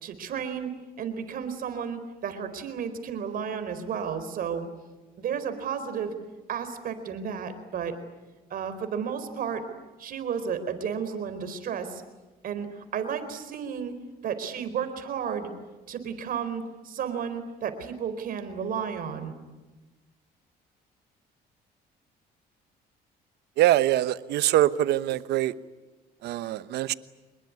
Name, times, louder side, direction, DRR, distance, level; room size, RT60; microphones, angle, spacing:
voice 1, 0.0-0.7 1.0-4.7 5.2-6.1 6.5-8.0 8.5-9.6 10.0-12.0 12.4-13.9 14.2-15.5 15.9-19.3, right 7 dB, 60° right, 4.3 m, -32 dB
voice 2, 23.6-25.5 26.2-26.9, right 14 dB, 75° right, 1.1 m, -23 dB
26.0 x 21.5 x 9.7 m
cardioid pair, 110°, 17 cm